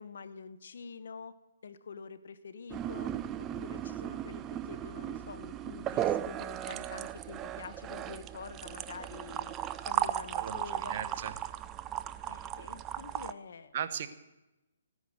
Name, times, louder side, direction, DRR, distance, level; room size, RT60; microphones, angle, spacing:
voice 1, 0.0-1.3 1.6-3.1 3.4-9.5 9.8-11.1 12.3-13.8, left 5 dB, 65° left, 13 dB, 1.1 m, -47 dB
sound 1, 2.7-13.3, right 11 dB, 20° right, 0.5 m, -36 dB
voice 2, 10.3-11.3 13.7-14.1, right 9 dB, 45° right, 10 dB, 1.1 m, -37 dB
16.0 x 9.8 x 6.6 m, 0.98 s
hypercardioid pair, 145°, 0 cm